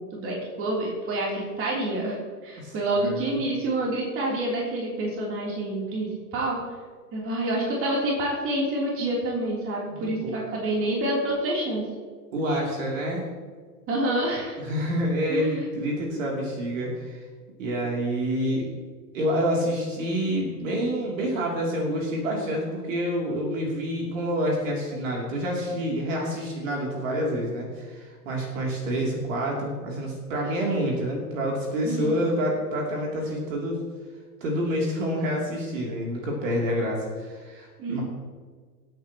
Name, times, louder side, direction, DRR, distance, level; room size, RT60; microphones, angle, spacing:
voice 1, 0.0-2.2 2.4-6.6 7.1-11.8 13.9-14.6 15.3-15.7 31.8-32.1 37.8-38.0, right 1 dB, 25° right, -3 dB, 3.4 m, -27 dB
voice 2, 2.6-3.2 9.9-10.3 12.3-13.3 14.6-17.2 17.6-18.7 19.1-33.8 34.4-38.0, equal, 55° right, -1 dB, 3.2 m, -28 dB
23.5 x 8.8 x 3.0 m, 1.5 s
figure-of-eight pair, 95°, 47 cm